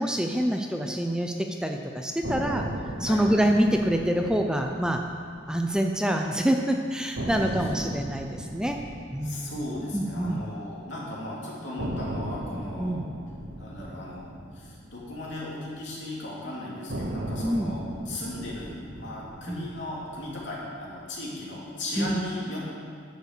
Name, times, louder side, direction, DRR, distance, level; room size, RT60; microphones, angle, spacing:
voice 1, 0.0-1.3 1.6-2.6 3.0-5.0 5.5-8.8 9.1-9.5 9.9-10.4 12.8-13.1 17.4-17.7 19.5-19.7 22.0-22.2, equal, 5° right, 3 dB, 0.5 m, -26 dB
sound 1, 2.2-6.3 6.6-6.7 7.1-11.2 11.8-16.1 16.9-21.3, right 1 dB, 70° right, 1.2 m, -37 dB
voice 2, 7.3-7.6 9.2-13.0 13.6-14.3 14.5-22.7, left 1 dB, 70° left, -5 dB, 3.0 m, -37 dB
10.5 x 7.4 x 6.7 m, 2.2 s
head